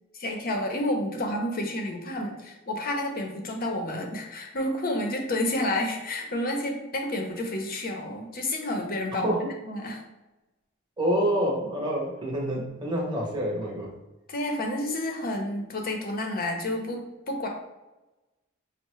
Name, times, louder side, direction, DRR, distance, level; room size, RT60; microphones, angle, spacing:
voice 1, 0.1-9.3 9.6-10.0 14.3-17.5, left 1 dB, 45° left, 2 dB, 0.6 m, -30 dB
voice 2, 9.1-9.5 11.0-13.9, equal, 20° right, -2 dB, 0.8 m, -27 dB
5.4 x 2.0 x 3.0 m, 1.0 s
head